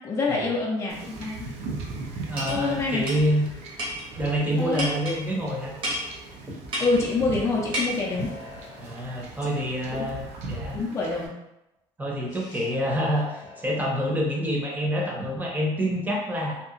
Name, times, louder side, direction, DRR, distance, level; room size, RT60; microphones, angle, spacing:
voice 1, 0.0-1.5 2.5-3.0 4.6-4.9 6.8-8.3 9.9-10.1 10.7-11.4 12.3-12.6, left 3 dB, 25° left, -3 dB, 0.5 m, -26 dB
Wind / Ocean / Boat Water vehicle, 0.9-11.3, right 3 dB, 65° right, 0.5 m, -39 dB
voice 2, 2.3-3.5 4.2-5.7 8.8-10.8 12.0-13.3 13.6-16.6, equal, 15° right, -2 dB, 0.8 m, -27 dB
sound 1, 2.4-2.6 3.1-3.2 3.8-4.1 4.8-5.2 5.8-6.1 6.7-7.0 7.7-7.9, equal, 45° right, 1.0 m, -29 dB
sound 2, 7.7-9.2 9.9-10.5 12.4-13.9, left 2 dB, 65° left, 0.6 m, -46 dB
2.8 x 2.4 x 2.4 m, 0.89 s
cardioid pair, 110°, 12 cm